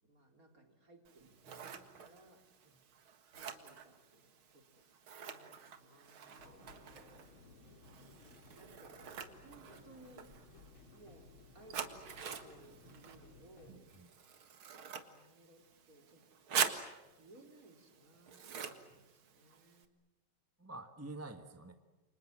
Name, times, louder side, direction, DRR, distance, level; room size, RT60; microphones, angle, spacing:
voice 1, 0.0-2.5 3.3-6.5 7.6-10.3 10.9-13.9 15.0-16.8 17.2-19.9, right 2 dB, 40° right, 3 dB, 4.4 m, -62 dB
Scissors, 1.1-19.8, right 7 dB, 90° right, 2.6 m, -45 dB
voice 2, 6.2-6.9 13.9-14.1 20.6-21.7, right 2 dB, 10° right, 7 dB, 1.2 m, -49 dB
sound 1, 6.4-13.8, left 3 dB, 75° left, 3.7 m, -59 dB
29.5 x 25.5 x 7.5 m, 1.1 s
omnidirectional pair, 2.2 m